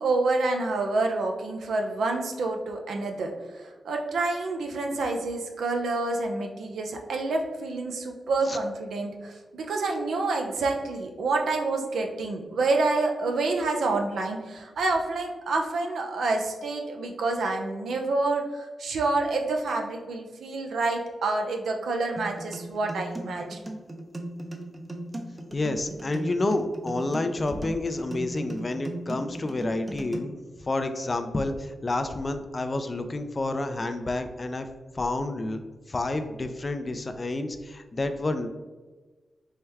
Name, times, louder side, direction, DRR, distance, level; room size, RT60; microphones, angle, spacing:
voice 1, 0.0-23.6, right 3 dB, 80° right, 2 dB, 0.5 m, -28 dB
sound 1, 22.2-30.2, right 1 dB, 25° right, 0.6 m, -37 dB
voice 2, 25.5-30.4 30.7-34.7 34.9-35.6 35.9-38.5, left 2 dB, 40° left, 8 dB, 0.4 m, -29 dB
4.5 x 2.1 x 3.4 m, 1.3 s
cardioid pair, 50°, 0 cm